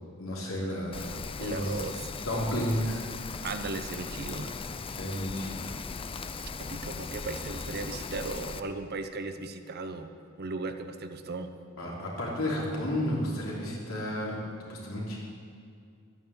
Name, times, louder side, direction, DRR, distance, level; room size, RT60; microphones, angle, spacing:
voice 1, 0.2-1.1 1.4-1.7 2.2-3.0 4.9-5.6 11.8-14.4 14.7-15.2, left 1 dB, 75° left, -4 dB, 3.4 m, -32 dB
Rain, 0.9-8.6, left 4 dB, 25° left, 0.5 m, -38 dB
voice 2, 1.4-2.1 3.4-4.5 6.6-10.1 10.4-11.5, right 3 dB, 50° right, 8 dB, 0.8 m, -36 dB
11.5 x 9.1 x 7.8 m, 2.3 s
head